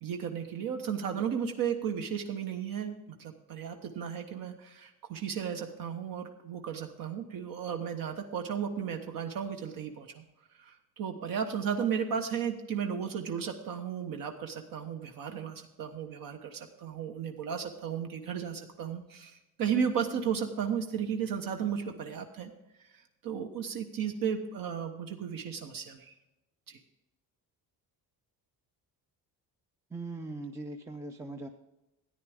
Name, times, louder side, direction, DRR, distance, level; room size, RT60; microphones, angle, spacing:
voice 1, 0.0-10.2 10.6-22.5 22.8-26.1 26.7-26.8, right 7 dB, 60° right, 5 dB, 1.2 m, -34 dB
voice 2, 29.9-31.5, right 2 dB, 10° right, 5 dB, 0.5 m, -40 dB
13.5 x 10.0 x 3.5 m, 0.95 s
cardioid pair, 165°, 38 cm